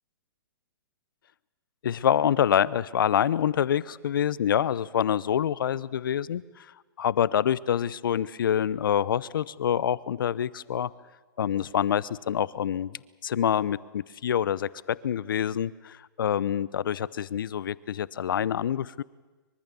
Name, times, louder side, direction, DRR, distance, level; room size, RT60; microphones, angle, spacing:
voice 1, 1.8-6.7 7.0-10.9 11.4-19.0, left 9 dB, 70° left, 20 dB, 0.8 m, -26 dB
23.5 x 23.5 x 7.0 m, 1.2 s
hypercardioid pair, 130°, 12 cm